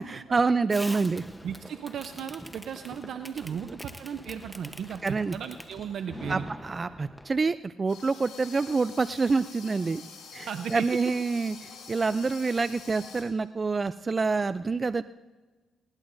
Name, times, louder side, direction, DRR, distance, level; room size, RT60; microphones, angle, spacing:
voice 1, 0.0-1.2 3.7-3.8 5.0-5.4 6.3-10.0 10.3-15.0, right 4 dB, 30° right, 14 dB, 0.4 m, -27 dB
Fireworks, 0.7-7.5, equal, 5° left, 0.9 m, -44 dB
voice 2, 1.4-6.5 10.4-10.9, right 8 dB, 70° right, 8 dB, 0.7 m, -36 dB
sound 1, 7.9-13.2, left 5 dB, 75° left, 4.8 m, -46 dB
20.0 x 18.5 x 2.6 m, 1.3 s
cardioid pair, 90°, 0 cm